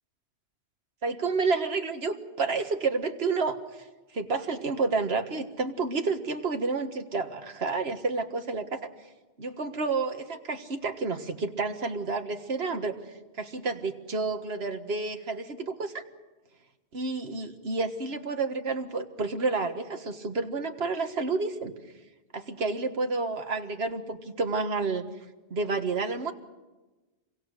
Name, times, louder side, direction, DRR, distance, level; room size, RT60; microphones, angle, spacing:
voice 1, 1.0-3.6 4.1-8.9 9.4-13.0 13.4-16.0 16.9-21.7 22.3-25.0 25.5-26.3, right 4 dB, 65° right, 6 dB, 1.8 m, -30 dB
27.5 x 23.0 x 6.6 m, 1.1 s
omnidirectional pair, 1.1 m